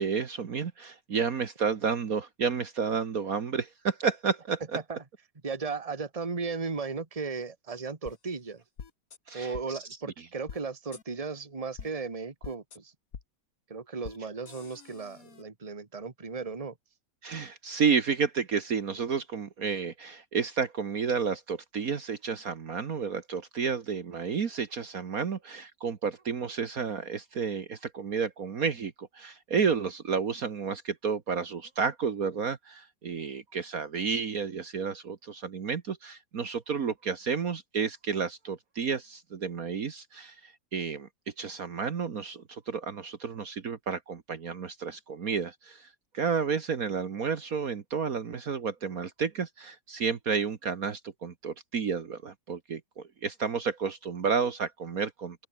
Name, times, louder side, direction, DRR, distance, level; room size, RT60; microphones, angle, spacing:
voice 1, 0.0-4.6 9.3-9.8 10.2-10.3 17.2-41.1 41.4-45.9 46.1-55.5, right 6 dB, 55° right, 1.8 m, -31 dB
voice 2, 5.4-8.6 9.3-12.9 13.7-16.7, right 4 dB, 20° right, 1.8 m, -36 dB
sound 1, 8.1-8.2 8.8-9.2 9.5-9.6 10.5-10.6 10.9-11.0 11.8-11.9 12.4-12.8 13.1-13.2 14.0-14.2 14.5-15.4, left 6 dB, 55° left, 2.1 m, -44 dB
open air
omnidirectional pair, 1.9 m